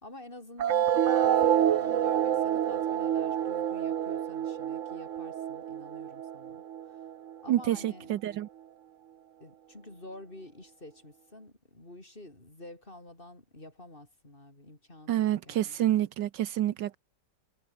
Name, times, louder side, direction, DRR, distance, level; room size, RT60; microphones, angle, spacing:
voice 1, 0.0-6.6 6.9-7.0 7.4-8.2 9.4-15.8, left 1 dB, 25° left, 5.0 m, -48 dB
sound 1, 0.6-7.6, right 10 dB, 55° right, 0.9 m, -28 dB
voice 2, 7.5-8.5 15.1-17.0, right 13 dB, 75° right, 1.4 m, -28 dB
omnidirectional pair, 2.0 m